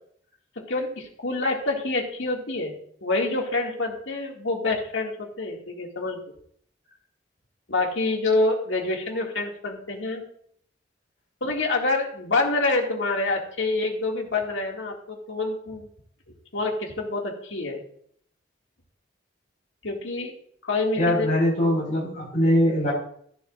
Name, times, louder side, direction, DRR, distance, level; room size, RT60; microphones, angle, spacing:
voice 1, 0.7-2.7 3.0-6.2 7.7-10.2 11.4-15.9 16.5-17.8 19.8-20.3 20.6-21.3, left 2 dB, 85° left, 1 dB, 2.3 m, -27 dB
voice 2, 21.0-22.9, equal, 40° left, -5 dB, 5.1 m, -22 dB
14.5 x 11.5 x 2.6 m, 0.64 s
head